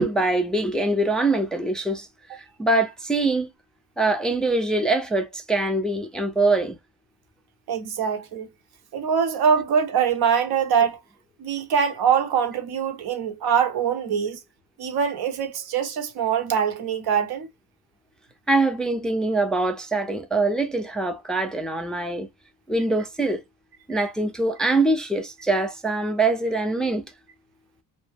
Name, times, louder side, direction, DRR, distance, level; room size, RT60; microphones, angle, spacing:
voice 1, 0.0-2.1 2.3-3.5 4.0-6.8 18.5-22.3 22.7-23.4 23.9-27.0, right 2 dB, ahead, 0.4 m, -23 dB
voice 2, 7.7-8.5 8.9-11.0 11.4-14.4 14.8-17.5, right 7 dB, 60° right, 0.9 m, -23 dB
2.1 x 2.0 x 3.1 m
cardioid pair, 80°, 43 cm